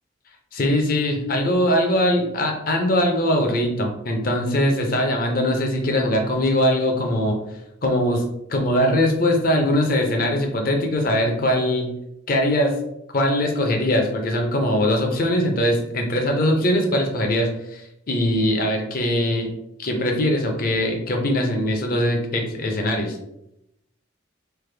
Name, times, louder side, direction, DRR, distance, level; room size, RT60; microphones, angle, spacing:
voice 1, 0.5-7.4 7.8-8.2 8.5-11.9 12.3-12.7 13.1-17.8 18.1-19.5 19.8-23.2, left 1 dB, 45° left, 3 dB, 0.6 m, -21 dB
3.3 x 2.1 x 3.3 m, 0.83 s
head